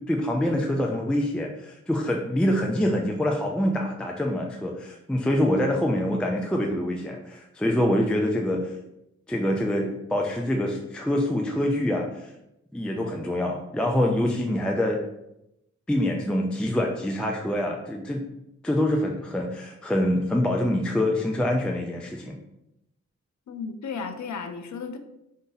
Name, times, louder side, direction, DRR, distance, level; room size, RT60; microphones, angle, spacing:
voice 1, 0.0-8.8 9.3-12.3 12.7-15.0 15.9-18.2 18.6-22.4, left 1 dB, 5° left, 0 dB, 0.4 m, -25 dB
voice 2, 23.5-25.0, left 5 dB, 75° left, 7 dB, 0.6 m, -34 dB
4.7 x 2.7 x 3.9 m, 0.86 s
wide cardioid pair, 105°, 29 cm